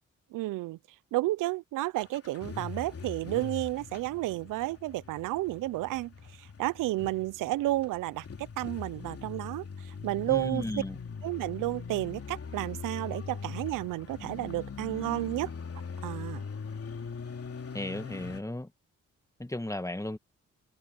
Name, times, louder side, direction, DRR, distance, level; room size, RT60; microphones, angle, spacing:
voice 1, 0.3-0.8 1.1-6.1 6.4-8.2 8.6-10.6 11.2-15.5 16.0-16.4, right 17 dB, 85° right, 0.6 m, -32 dB
sound 1, 2.0-18.4, left 5 dB, 50° left, 3.2 m, -41 dB
voice 2, 10.3-11.0 17.7-18.7 19.4-20.2, left 1 dB, 10° left, 1.8 m, -35 dB
supercardioid pair, 60°, 31 cm